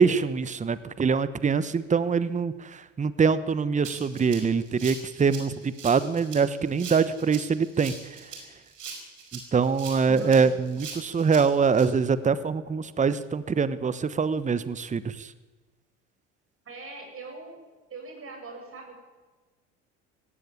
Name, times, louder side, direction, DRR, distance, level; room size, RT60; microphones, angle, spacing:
voice 1, 0.0-2.5 3.0-7.9 9.5-15.0, right 5 dB, 20° right, 15 dB, 1.1 m, -24 dB
Rattle (instrument), 3.8-11.8, right 5 dB, 85° right, 5.0 m, -41 dB
voice 2, 10.0-10.6 16.6-17.6 17.9-19.0, right 2 dB, 35° right, 2 dB, 7.7 m, -41 dB
17.5 x 16.0 x 9.9 m, 1.3 s
hypercardioid pair, 70°, 37 cm